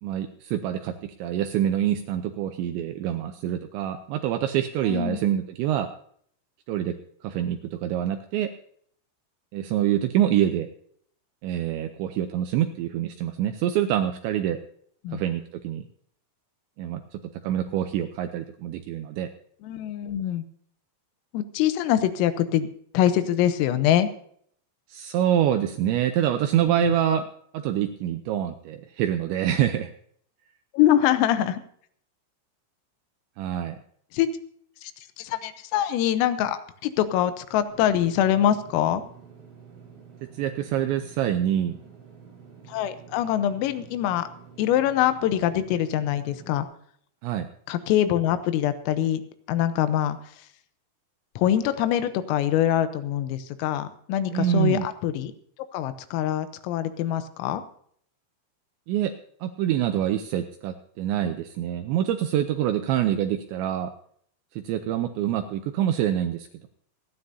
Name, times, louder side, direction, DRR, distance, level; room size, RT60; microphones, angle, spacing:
voice 1, 0.0-5.9 6.7-6.9 7.2-8.5 9.5-10.7 11.4-14.6 15.1-15.9 16.8-19.3 24.9-27.2 27.5-29.9 33.4-33.8 40.3-41.8 47.2-47.5 54.3-54.9 58.9-59.1 59.4-63.9 64.6-66.7, right 11 dB, 85° right, 7 dB, 2.6 m, -26 dB
voice 2, 4.9-5.2 15.0-15.2 19.6-20.4 21.3-22.7 22.9-24.1 26.6-26.9 30.7-31.6 34.1-34.3 35.2-39.0 42.7-44.3 44.6-46.7 47.7-49.2 49.5-50.2 51.4-55.3 55.7-57.6, left 11 dB, 85° left, 11 dB, 3.5 m, -24 dB
Engine / Mechanisms, 37.7-46.6, right 7 dB, 60° right, 5.6 m, -49 dB
27.0 x 9.7 x 2.7 m, 0.63 s
omnidirectional pair, 5.9 m